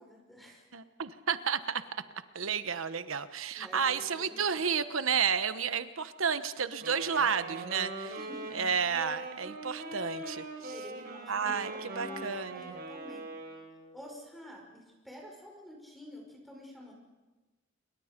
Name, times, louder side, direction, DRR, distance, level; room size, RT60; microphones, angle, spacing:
voice 1, 0.0-0.7 3.5-4.6 8.2-8.7 10.7-13.3 13.9-16.9, left 1 dB, ahead, 0 dB, 5.5 m, -49 dB
voice 2, 0.7-1.8 2.3-8.2 8.5-10.7 11.3-12.7, right 6 dB, 85° right, 11 dB, 1.1 m, -31 dB
Wind instrument woodwind instrument, 6.7-13.9, right 2 dB, 50° right, 5.6 m, -42 dB
28.0 x 23.0 x 5.3 m, 1.2 s
head